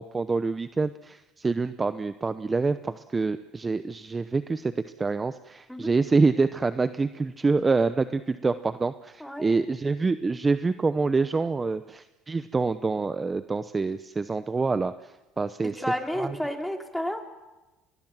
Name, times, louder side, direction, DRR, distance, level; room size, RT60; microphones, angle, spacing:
voice 1, 0.0-15.8 16.2-16.4, right 4 dB, 20° right, 12 dB, 0.8 m, -26 dB
voice 2, 15.6-17.2, equal, 5° left, 4 dB, 3.1 m, -31 dB
25.5 x 20.5 x 7.5 m, 1.1 s
cardioid pair, 105°, 0 cm